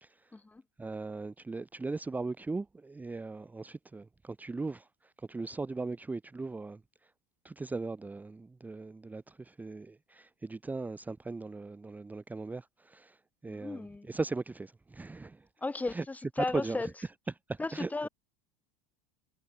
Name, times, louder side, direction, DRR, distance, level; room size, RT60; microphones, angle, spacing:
voice 1, 0.0-0.3 0.8-7.1 7.4-15.5 15.9-16.0 16.5-16.9 17.5-18.1, right 3 dB, 10° right, 1.1 m, -39 dB
voice 2, 13.5-14.1 15.6-16.9 17.6-18.1, left 3 dB, 10° left, 1.5 m, -35 dB
supercardioid pair, 150°, 19 cm